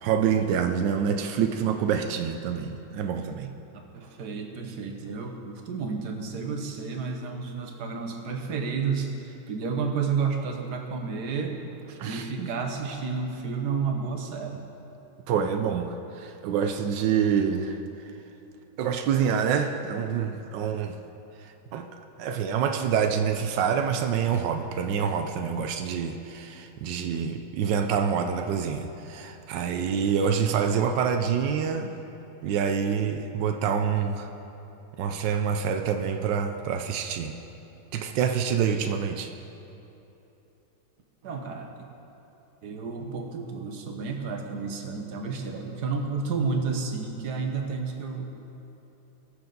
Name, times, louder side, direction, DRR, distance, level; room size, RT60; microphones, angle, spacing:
voice 1, 0.0-3.5 12.0-12.5 15.3-17.8 18.8-20.9 21.7-21.9 22.2-31.9 32.4-34.3 35.0-37.4 37.9-39.3, right 7 dB, 90° right, 6 dB, 1.3 m, -26 dB
voice 2, 3.9-11.6 12.0-14.7 41.2-41.8 42.6-48.3, right 5 dB, 70° right, 3 dB, 1.6 m, -31 dB
20.5 x 6.8 x 3.9 m, 3.0 s
omnidirectional pair, 1.9 m